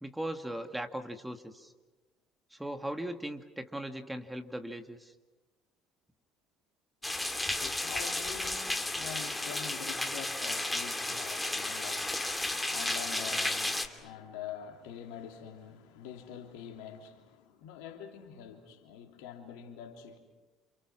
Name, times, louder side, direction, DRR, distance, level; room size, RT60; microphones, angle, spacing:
voice 1, 0.0-1.7 2.5-5.1, right 1 dB, 10° right, 2.2 m, -38 dB
voice 2, 7.0-20.2, left 8 dB, 75° left, 3.2 m, -46 dB
sound 1, 7.0-13.9, left 2 dB, 10° left, 2.7 m, -33 dB
28.5 x 28.5 x 6.3 m
hypercardioid pair, 65°, 0 cm